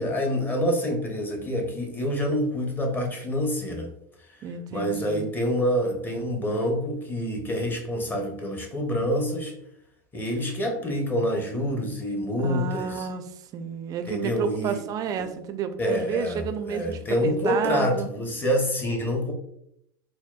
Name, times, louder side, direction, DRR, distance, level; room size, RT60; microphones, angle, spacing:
voice 1, 0.0-3.9 4.7-9.5 10.1-13.1 14.1-14.8 15.8-16.4 16.7-19.3, equal, 15° left, 2 dB, 0.7 m, -27 dB
voice 2, 4.4-5.2 12.4-18.1, right 7 dB, 30° right, 8 dB, 0.4 m, -31 dB
4.1 x 2.2 x 2.2 m, 0.75 s
supercardioid pair, 120°, 11 cm